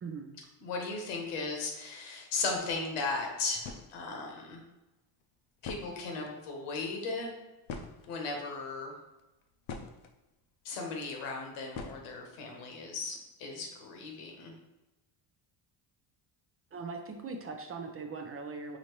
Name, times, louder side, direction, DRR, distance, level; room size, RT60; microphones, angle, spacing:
voice 1, 0.0-0.4 16.7-18.8, right 4 dB, 30° right, 4 dB, 0.5 m, -40 dB
voice 2, 0.6-4.6 5.6-7.3 8.1-8.9 10.6-14.5, left 3 dB, 90° left, 1 dB, 1.2 m, -36 dB
sound 1, 3.6-4.0 5.2-5.3 5.6-6.4 7.7-8.5 9.2-10.1 11.7-12.4, left 4 dB, 65° left, 0.7 m, -43 dB
5.0 x 2.8 x 3.1 m, 1.0 s
cardioid pair, 100°, 49 cm